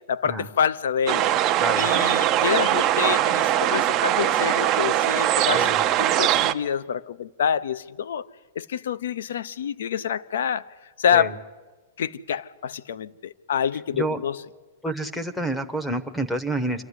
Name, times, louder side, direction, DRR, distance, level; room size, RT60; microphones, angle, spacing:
voice 1, 0.1-1.3 1.8-5.7 6.0-8.3 8.6-10.7 11.0-11.4 12.0-14.4, left 8 dB, 75° left, 0.7 m, -27 dB
sound 1, 1.1-6.5, right 12 dB, 25° right, 0.6 m, -21 dB
voice 2, 14.8-16.8, right 1 dB, 5° left, 0.9 m, -28 dB
26.5 x 12.5 x 9.8 m
supercardioid pair, 170°, 0 cm